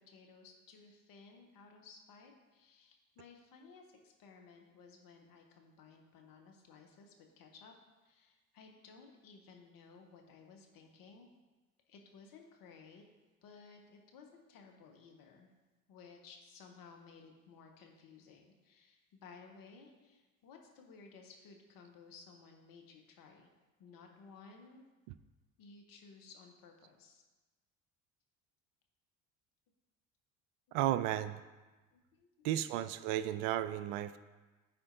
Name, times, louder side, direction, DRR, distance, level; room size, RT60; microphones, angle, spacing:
voice 1, 0.0-7.7 8.0-11.3 11.9-13.0 13.4-15.5 15.9-23.5 23.8-24.8 25.6-27.2 30.7-30.8 31.9-33.1, left 5 dB, 55° left, 3 dB, 1.2 m, -57 dB
voice 2, 30.7-31.4 32.4-34.2, right 13 dB, 65° right, 13 dB, 0.5 m, -33 dB
13.0 x 4.3 x 2.6 m, 1.2 s
hypercardioid pair, 60°, 41 cm